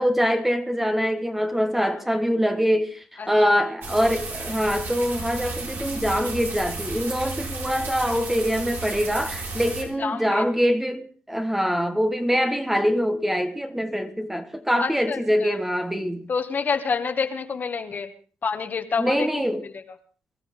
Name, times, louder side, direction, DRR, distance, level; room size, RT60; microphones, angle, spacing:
voice 1, 0.0-16.3 19.0-19.6, equal, 5° right, 1.5 m, -24 dB
sound 1, 3.8-9.8, right 3 dB, 70° right, 4.4 m, -33 dB
voice 2, 10.0-10.4 14.8-15.6 16.3-18.1 18.4-19.3 19.6-19.8, left 5 dB, 45° left, 1.9 m, -27 dB
23.0 x 13.0 x 3.8 m
cardioid pair, 80°, 4 cm